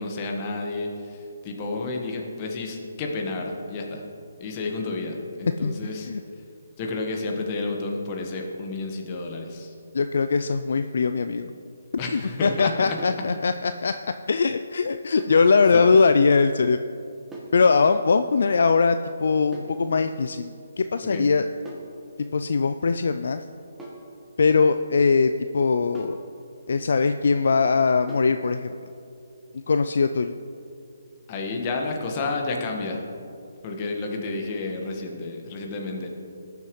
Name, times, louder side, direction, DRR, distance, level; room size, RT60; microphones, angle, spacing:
voice 1, 0.0-4.0 4.4-6.1 6.8-9.7 12.0-13.0 15.7-16.0 21.0-21.3 31.3-33.0 33.6-36.1, left 3 dB, 30° left, 1 dB, 1.5 m, -31 dB
voice 2, 5.6-6.2 9.9-11.5 12.1-13.9 14.3-16.8 17.5-21.4 22.3-23.4 24.4-26.2 26.7-28.7 29.5-30.3, left 4 dB, 65° left, 9 dB, 0.3 m, -21 dB
sound 1, 13.0-13.3 15.2-15.5 17.3-17.6 19.5-19.8 21.7-22.0 23.8-24.1 25.9-26.3 28.1-28.4, right 2 dB, 10° right, 1.4 m, -41 dB
18.0 x 7.0 x 3.2 m, 2.6 s
figure-of-eight pair, 145°, 0 cm